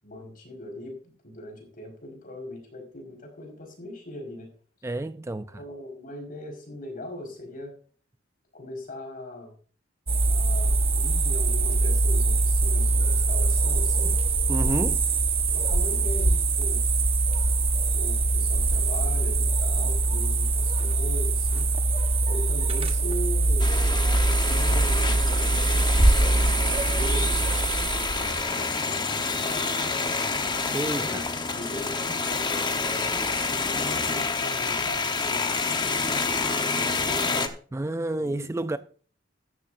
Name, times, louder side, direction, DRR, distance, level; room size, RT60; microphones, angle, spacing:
voice 1, 0.0-4.5 5.5-7.7 8.5-9.5 10.3-14.1 15.5-16.8 17.9-21.7 22.3-23.7 24.4-25.2 26.2-27.5 28.0-30.2 31.0-33.2 33.8-37.5 38.2-38.8, left 1 dB, 45° left, 4.9 m, -40 dB
voice 2, 4.8-5.6 14.5-15.0 30.7-31.2 37.7-38.8, right 1 dB, 15° right, 0.4 m, -29 dB
sound 1, 10.1-28.4, right 2 dB, 30° right, 1.2 m, -23 dB
sound 2, 23.6-37.5, left 4 dB, 25° left, 1.1 m, -28 dB
14.0 x 12.0 x 2.6 m
head